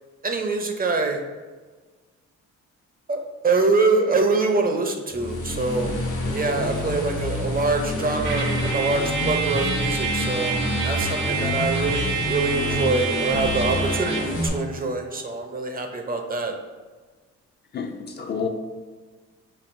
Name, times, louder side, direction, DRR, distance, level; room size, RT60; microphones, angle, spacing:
voice 1, 0.2-1.2 3.1-6.0 6.3-10.6 10.8-16.5, right 3 dB, 30° right, 4 dB, 0.5 m, -24 dB
sound 1, 5.1-14.5, left 1 dB, 90° left, 1.3 m, -27 dB
Trumpet, 8.2-14.4, right 5 dB, 75° right, 0.8 m, -28 dB
Bowed string instrument, 12.3-16.1 16.4-16.5, left 6 dB, 65° left, 1.1 m, -46 dB
voice 2, 17.7-18.5, left 6 dB, 35° left, 4 dB, 0.4 m, -29 dB
5.2 x 2.6 x 2.5 m, 1.4 s
cardioid pair, 90°, 30 cm